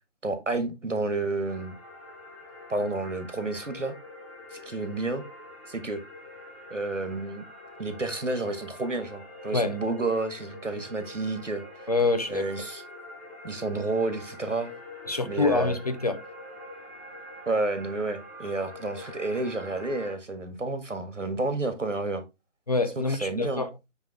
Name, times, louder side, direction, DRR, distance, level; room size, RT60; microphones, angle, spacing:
voice 1, 0.2-1.8 2.7-3.9 4.5-5.2 5.7-6.0 6.7-7.5 7.8-11.6 12.3-12.8 13.4-14.7 15.2-15.8 17.5-22.2 23.1-23.7, right 2 dB, 85° right, 1.8 m, -30 dB
sound 1, 1.5-20.1, left 1 dB, 10° right, 0.9 m, -45 dB
voice 2, 11.9-12.5 15.1-16.2 22.7-23.7, left 3 dB, 35° left, 0.6 m, -26 dB
9.0 x 3.3 x 3.4 m
figure-of-eight pair, 155°, 36 cm